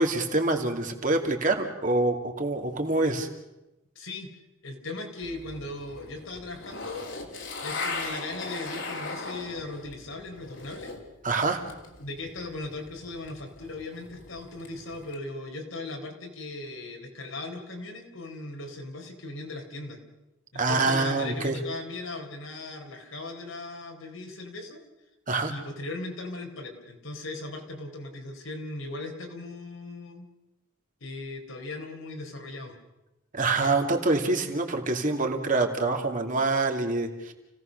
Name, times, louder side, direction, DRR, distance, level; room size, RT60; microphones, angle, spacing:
voice 1, 0.0-3.3 11.2-11.6 20.5-21.6 25.3-25.5 33.3-37.3, right 2 dB, 40° right, 4 dB, 2.5 m, -26 dB
voice 2, 3.9-4.3 4.6-7.1 7.6-10.9 12.0-20.0 20.5-24.8 25.5-30.3 31.0-32.8, left 2 dB, 90° left, 3 dB, 4.3 m, -38 dB
sound 1, 5.2-11.1 11.4-15.2, left 3 dB, 65° left, 3.2 m, -39 dB
29.5 x 17.0 x 6.6 m, 0.96 s
head